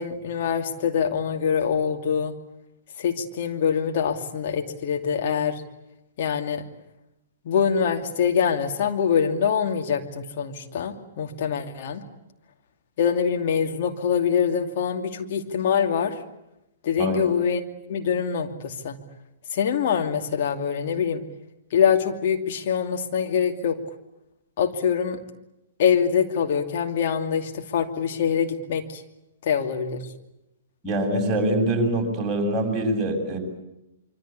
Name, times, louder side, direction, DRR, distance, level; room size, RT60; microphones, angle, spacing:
voice 1, 0.0-2.3 3.0-5.6 6.2-6.6 7.4-12.0 13.0-16.2 16.8-17.6 17.9-19.0 19.5-21.2 21.7-23.8 24.6-25.2 25.8-29.0 29.4-30.0, left 7 dB, 45° left, 4 dB, 2.7 m, -24 dB
voice 2, 17.0-17.3 30.8-33.4, right 1 dB, 15° right, 0 dB, 7.5 m, -24 dB
26.0 x 25.0 x 8.5 m, 0.90 s
figure-of-eight pair, 110°, 0 cm